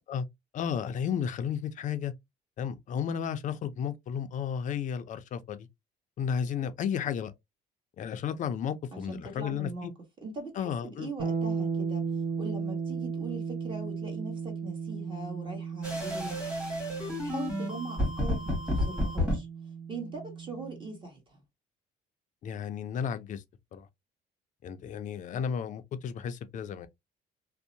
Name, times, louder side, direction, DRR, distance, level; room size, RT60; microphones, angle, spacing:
voice 1, 0.5-2.1 2.6-5.7 6.2-7.3 8.0-9.9 10.6-11.1 22.4-23.4 23.7-23.9 24.6-26.9, left 7 dB, 50° left, 0.4 m, -33 dB
voice 2, 8.9-9.9 10.2-12.0 12.4-16.4 16.8-19.5 19.9-21.4, right 2 dB, 30° right, 1.2 m, -41 dB
sound 1, 11.2-21.0, right 6 dB, 65° right, 0.7 m, -35 dB
sound 2, 15.8-19.4, left 1 dB, 5° right, 1.2 m, -31 dB
2.6 x 2.1 x 2.6 m
cardioid pair, 110°, 17 cm